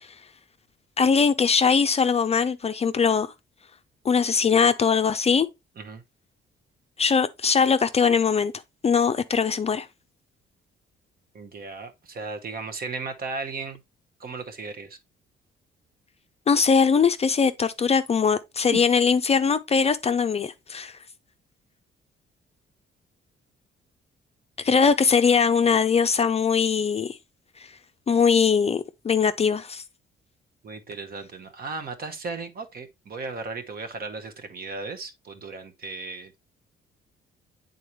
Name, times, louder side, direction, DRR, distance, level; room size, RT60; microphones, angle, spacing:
voice 1, 1.0-3.3 4.0-5.5 7.0-8.5 8.8-9.9 16.5-20.9 24.6-27.2 28.1-29.8, left 6 dB, 30° left, 0.4 m, -21 dB
voice 2, 11.3-13.8 14.2-15.0 18.7-18.8 30.6-36.5, right 4 dB, 50° right, 1.0 m, -36 dB
8.3 x 3.9 x 3.0 m
cardioid pair, 90°, 20 cm